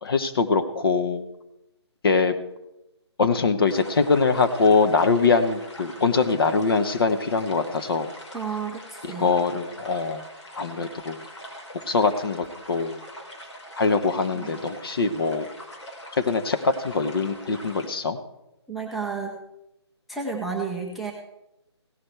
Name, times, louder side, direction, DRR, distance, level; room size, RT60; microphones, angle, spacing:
voice 1, 0.0-1.2 2.0-2.3 3.2-8.1 9.0-10.2 10.6-11.2 11.9-13.0 13.8-15.5 16.2-18.2, left 4 dB, 55° left, 9 dB, 1.1 m, -23 dB
sound 1, 3.7-17.9, equal, 80° left, 3.3 m, -43 dB
voice 2, 8.3-9.3 14.3-14.5 18.7-19.4 20.1-21.1, right 5 dB, ahead, -5 dB, 0.4 m, -31 dB
16.5 x 11.0 x 3.4 m, 0.90 s
figure-of-eight pair, 155°, 15 cm